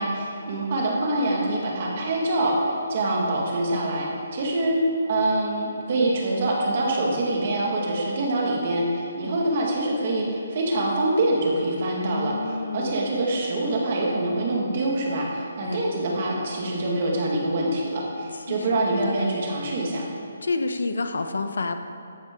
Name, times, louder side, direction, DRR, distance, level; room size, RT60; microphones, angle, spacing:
voice 1, 0.0-4.8 5.1-20.0, right 1 dB, 30° right, -2 dB, 2.0 m, -25 dB
voice 2, 12.0-13.0 15.6-16.0 18.5-19.3 20.4-21.7, left 3 dB, 80° left, 8 dB, 1.0 m, -29 dB
14.0 x 10.5 x 3.9 m, 3.0 s
hypercardioid pair, 180°, 0 cm